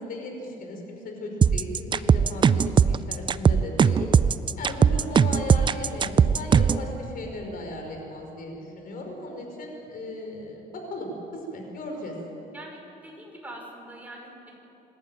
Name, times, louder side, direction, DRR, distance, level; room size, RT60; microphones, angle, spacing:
voice 1, 0.0-4.1 4.6-11.1 11.5-12.1, left 1 dB, 55° left, 2 dB, 5.0 m, -36 dB
sound 1, 1.4-6.8, right 6 dB, 30° right, 0.5 m, -19 dB
voice 2, 4.7-5.2 11.9-12.2 12.5-14.5, right 1 dB, 10° right, -1 dB, 5.7 m, -44 dB
26.0 x 12.0 x 9.1 m, 3.0 s
cardioid pair, 110°, 17 cm